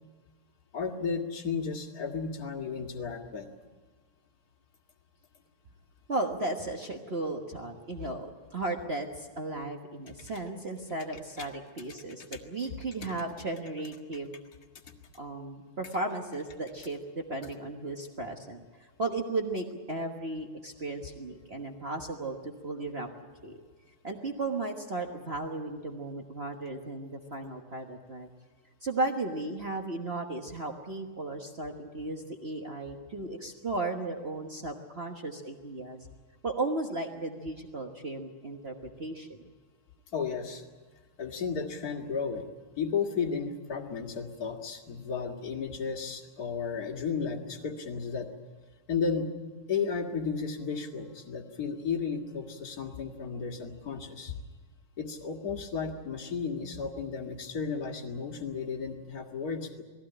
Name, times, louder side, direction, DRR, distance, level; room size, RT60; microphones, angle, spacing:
voice 1, 0.7-3.5 11.4-11.5 12.2-12.4 14.8-14.9 40.1-40.6 41.2-42.4 42.8-48.3 48.9-49.3 49.7-54.4 55.0-59.8, left 5 dB, 35° left, 3 dB, 1.8 m, -33 dB
voice 2, 6.1-14.4 15.2-18.6 19.0-23.1 23.4-23.6 24.0-28.3 28.8-36.0 36.4-38.7 39.0-39.4, right 2 dB, 65° right, 3 dB, 0.6 m, -35 dB
20.5 x 16.0 x 10.0 m, 1.4 s
omnidirectional pair, 3.4 m